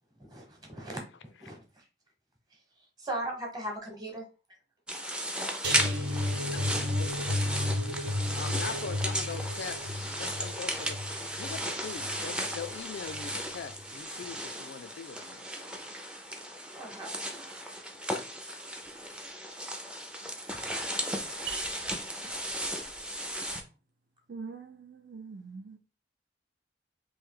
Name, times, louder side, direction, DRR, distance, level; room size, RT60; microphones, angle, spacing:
voice 1, 0.2-1.9 2.5-4.3 16.8-17.1, right 1 dB, 20° right, 1.1 m, -39 dB
sound 1, 4.9-23.6, equal, 5° right, 0.4 m, -35 dB
sound 2, 5.6-12.7 13.1-13.4 13.7-13.8, left 1 dB, 80° right, 1.0 m, -33 dB
voice 2, 6.5-7.5 8.3-15.4 20.2-20.3, left 6 dB, 75° left, 0.4 m, -42 dB
voice 3, 21.5-21.8 24.3-25.8, right 6 dB, 65° right, 0.5 m, -42 dB
3.2 x 2.6 x 3.7 m
head